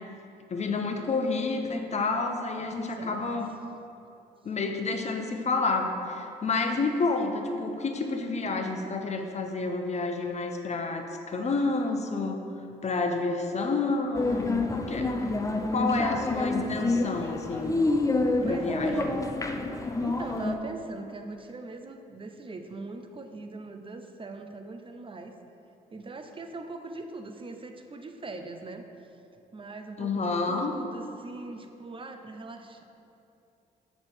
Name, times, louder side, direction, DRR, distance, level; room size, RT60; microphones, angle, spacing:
voice 1, 0.5-3.5 4.4-12.4 12.8-15.2 15.7-17.8 18.5-19.1 30.0-30.7, left 3 dB, 40° left, 4 dB, 0.9 m, -29 dB
voice 2, 2.7-3.4 15.8-16.1 18.4-19.2 20.0-25.4 25.9-28.8 29.5-32.8, right 3 dB, 30° right, 6 dB, 0.7 m, -40 dB
sound 1, 14.1-20.6, left 2 dB, 20° left, 0.6 m, -28 dB
6.9 x 6.7 x 4.4 m, 2.7 s
supercardioid pair, 65°, 17 cm